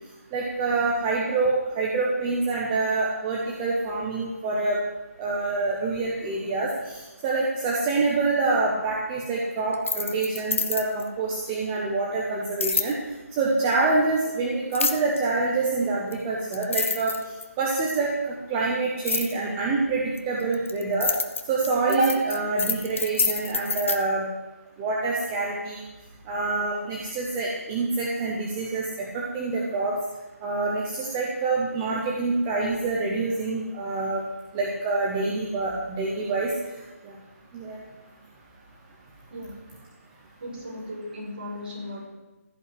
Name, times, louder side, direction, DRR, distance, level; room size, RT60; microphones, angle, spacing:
voice 1, 0.3-4.8 5.2-13.0 13.4-17.1 17.6-21.1 21.5-24.3 24.8-25.8 26.3-29.9 30.4-34.2 34.5-36.5 37.0-37.1 37.5-37.8, right 3 dB, 5° right, -3 dB, 0.6 m, -26 dB
sound 1, 9.7-11.1 12.6-12.9 14.7-15.2 16.1-16.2 16.5-17.6 19.1-19.3 20.2-24.0, left 4 dB, 55° left, 1.2 m, -27 dB
voice 2, 40.4-42.0, left 1 dB, 40° right, -5 dB, 5.9 m, -36 dB
15.5 x 5.7 x 9.7 m, 1.1 s
hypercardioid pair, 180°, 8 cm